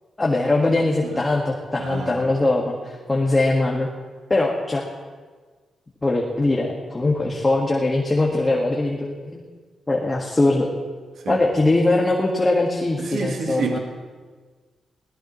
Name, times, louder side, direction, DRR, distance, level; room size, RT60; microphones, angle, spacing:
voice 1, 0.2-3.9 4.3-4.9 6.0-9.4 9.9-10.7 11.3-13.8, left 2 dB, 20° left, -2 dB, 1.8 m, -21 dB
voice 2, 1.8-2.2 11.2-11.4 13.0-13.8, right 5 dB, 70° right, 3 dB, 1.5 m, -29 dB
23.0 x 18.0 x 3.2 m, 1.4 s
cardioid pair, 105°, 0 cm